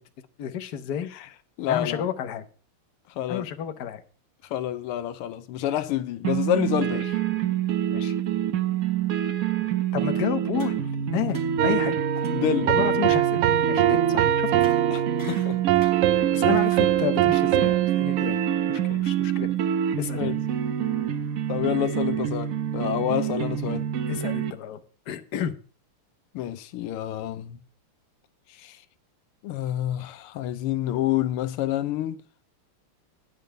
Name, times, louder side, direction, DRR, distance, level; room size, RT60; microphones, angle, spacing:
voice 1, 0.4-1.1 1.7-2.5 3.3-4.0 6.9-7.1 7.9-8.2 9.9-11.9 12.6-13.4 13.7-14.5 16.3-19.5 20.0-20.3 24.1-24.8 25.1-25.6, left 10 dB, 55° left, 1.3 m, -31 dB
voice 2, 1.6-2.0 3.2-3.5 4.5-7.1 12.3-12.7 14.9-15.6 20.2-20.4 21.5-23.8 26.4-27.6 28.6-28.8 29.4-32.2, left 12 dB, 90° left, 1.6 m, -28 dB
sound 1, 6.2-24.5, right 9 dB, 65° right, 0.9 m, -27 dB
sound 2, 10.5-11.0 11.3-11.7 12.1-12.4 12.6-12.9 14.5-16.1 16.4-16.9, left 1 dB, 10° left, 2.2 m, -45 dB
sound 3, 11.6-18.9, right 12 dB, 85° right, 1.6 m, -23 dB
10.0 x 5.3 x 7.9 m
omnidirectional pair, 2.4 m